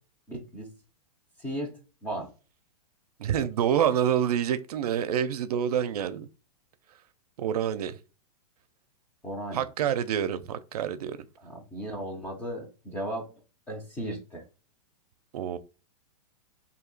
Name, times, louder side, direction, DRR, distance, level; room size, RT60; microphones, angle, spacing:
voice 1, 0.3-0.7 1.4-2.3 9.2-9.6 11.4-13.3 13.7-14.4, right 1 dB, 10° left, 0.4 m, -36 dB
voice 2, 3.2-6.3 7.4-8.0 9.5-11.2 15.3-15.6, right 9 dB, 75° right, 0.4 m, -27 dB
2.8 x 2.7 x 3.8 m
supercardioid pair, 165°, 20 cm